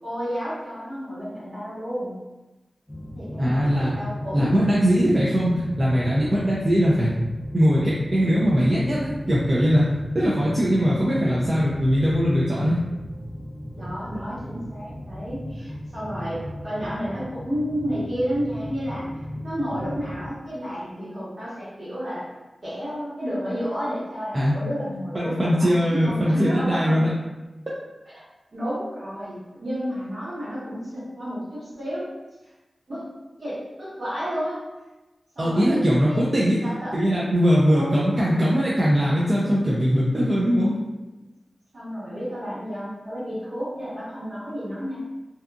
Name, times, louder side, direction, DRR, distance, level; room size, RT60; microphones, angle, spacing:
voice 1, 0.0-2.1 3.1-4.5 13.7-19.1 19.4-22.3 22.6-27.1 28.1-28.2 28.5-32.1 32.4-32.5 32.9-33.1 33.4-34.6 35.3-36.3 36.6-36.9 37.7-38.0 41.7-45.0, equal, 60° right, -11 dB, 1.5 m, -31 dB
sound 1, 2.9-20.3, equal, 20° left, 0.5 m, -36 dB
voice 2, 3.4-4.0 4.3-7.1 7.5-12.8 24.3-24.6 25.1-27.1 35.4-36.6 36.9-40.8, equal, 35° right, -7 dB, 0.4 m, -21 dB
2.7 x 2.4 x 2.3 m, 1.1 s
wide cardioid pair, 70°, 0 cm